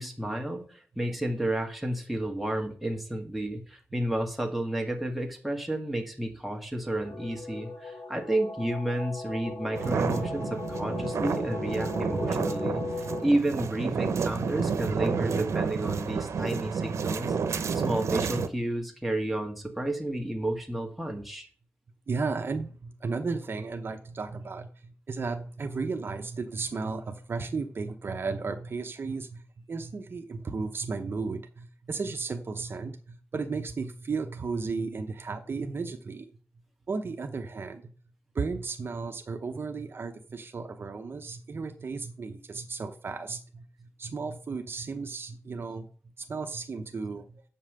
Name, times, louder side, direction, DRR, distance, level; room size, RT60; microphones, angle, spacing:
voice 1, 0.0-12.8 13.2-17.4 17.7-21.5, right 1 dB, ahead, 1 dB, 1.7 m, -31 dB
sound 1, 7.0-13.3, left 3 dB, 60° left, 1.1 m, -37 dB
sound 2, 9.7-18.5, right 5 dB, 85° right, 0.8 m, -30 dB
voice 2, 22.1-29.4 29.7-36.3 36.9-37.9 38.3-45.8 46.2-47.4, right 4 dB, 50° right, 5 dB, 0.8 m, -34 dB
7.5 x 5.5 x 6.6 m, 0.43 s
wide cardioid pair, 115°, 5 cm